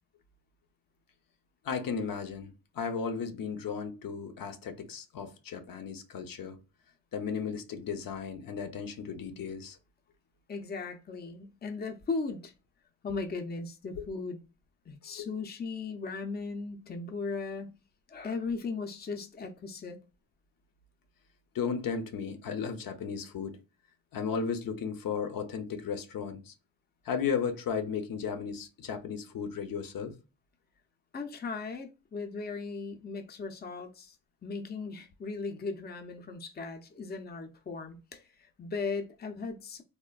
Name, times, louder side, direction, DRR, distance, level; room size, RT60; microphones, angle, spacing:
voice 1, 1.6-6.6 7.1-9.8 14.0-14.1 15.2-15.3 21.5-23.6 24.1-26.5 27.0-30.2, left 6 dB, 80° left, 0.6 m, -35 dB
voice 2, 10.5-12.5 13.0-14.4 14.9-17.7 18.1-20.0 31.1-34.2 34.4-39.8, left 4 dB, 30° left, 0.5 m, -37 dB
3.2 x 2.1 x 2.2 m
wide cardioid pair, 105°, 34 cm